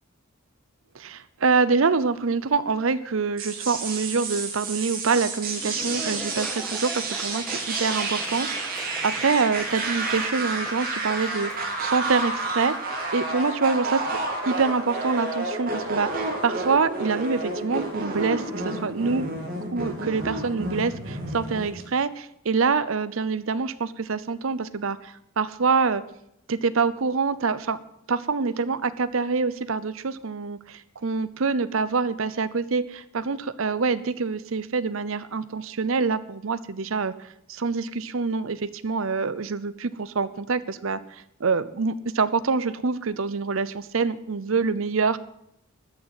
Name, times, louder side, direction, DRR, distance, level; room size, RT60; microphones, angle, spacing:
voice 1, 0.9-14.2 14.5-19.4 19.7-26.0 26.5-27.8 28.1-37.1 37.5-45.2, right 4 dB, 70° right, 14 dB, 0.7 m, -26 dB
sound 1, 3.4-21.8, right 2 dB, 45° right, 3.0 m, -30 dB
Laughter / Applause, 5.3-13.2, equal, 5° left, 1.4 m, -40 dB
13.0 x 6.5 x 9.3 m, 0.78 s
head